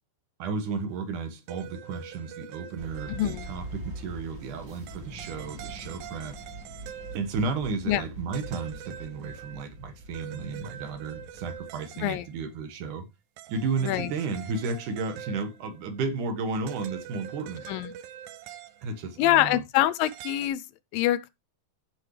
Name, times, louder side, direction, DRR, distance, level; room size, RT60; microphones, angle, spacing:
voice 1, 0.4-6.4 7.1-13.1 13.5-17.7 18.8-19.6, right 4 dB, 65° right, 2.8 m, -33 dB
sound 1, 1.5-3.9 4.9-7.7 8.3-12.5 13.4-16.0 16.7-19.1 20.0-20.5, right 10 dB, 80° right, 2.4 m, -44 dB
sound 2, 2.8-11.7, right 1 dB, 30° right, 2.6 m, -43 dB
voice 2, 3.1-3.5 7.9-8.0 12.0-12.2 13.8-14.1 17.7-17.9 19.2-20.6 20.9-21.3, left 14 dB, 80° left, 2.2 m, -25 dB
15.0 x 6.4 x 3.2 m
omnidirectional pair, 4.3 m